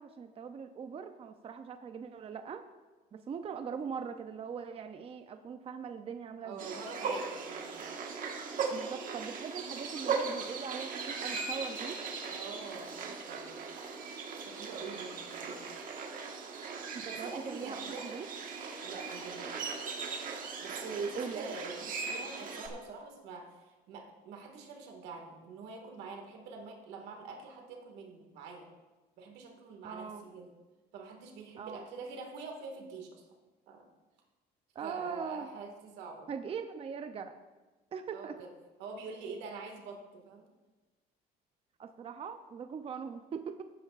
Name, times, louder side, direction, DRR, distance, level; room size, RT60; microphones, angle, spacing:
voice 1, 0.0-2.6 3.1-6.8 8.7-12.0 16.9-18.3 21.1-21.5 29.8-30.2 31.6-31.8 34.7-35.5 36.3-37.3 37.9-38.4 41.8-43.6, right 6 dB, 35° right, 7 dB, 0.5 m, -41 dB
voice 2, 6.4-7.9 12.3-13.6 14.4-15.7 17.1-18.1 18.8-19.9 20.6-28.7 29.2-30.5 30.9-33.3 33.7-33.9 34.8-36.3 38.1-38.5 38.8-40.5, right 4 dB, 90° right, 2 dB, 1.9 m, -45 dB
sound 1, 6.6-22.7, right 5 dB, 55° right, 1.5 m, -39 dB
16.5 x 8.7 x 2.5 m, 1.2 s
cardioid pair, 110°, 17 cm